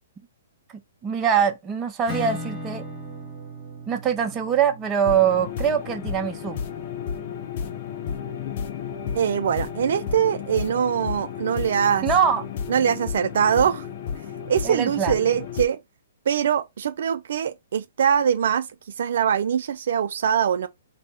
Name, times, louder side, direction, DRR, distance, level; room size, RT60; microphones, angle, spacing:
voice 1, 1.0-2.8 3.9-6.6 12.0-12.4 14.6-15.2, right 8 dB, 20° right, 0.7 m, -23 dB
Acoustic guitar / Strum, 2.1-7.5, left 1 dB, 15° left, 1.3 m, -38 dB
sound 1, 5.0-15.7, left 7 dB, 50° left, 0.6 m, -32 dB
voice 2, 9.1-12.1 12.7-13.9 14.5-15.8 16.3-18.7 19.0-20.7, right 8 dB, 65° right, 0.3 m, -23 dB
3.3 x 2.1 x 4.0 m
hypercardioid pair, 140°, 0 cm